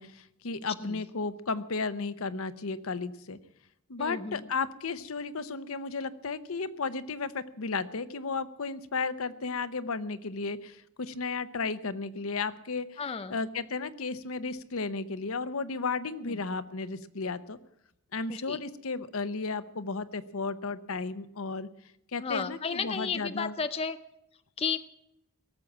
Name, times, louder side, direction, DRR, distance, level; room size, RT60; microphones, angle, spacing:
voice 1, 0.0-3.4 3.9-13.0 13.3-17.6 18.1-21.7 22.1-23.5, left 4 dB, 70° left, 13 dB, 0.8 m, -34 dB
voice 2, 4.0-4.4 13.0-13.4 16.2-16.4 18.3-18.6 22.2-24.0 24.6-24.8, left 5 dB, 25° left, 11 dB, 0.5 m, -33 dB
17.5 x 7.3 x 9.2 m, 0.80 s
head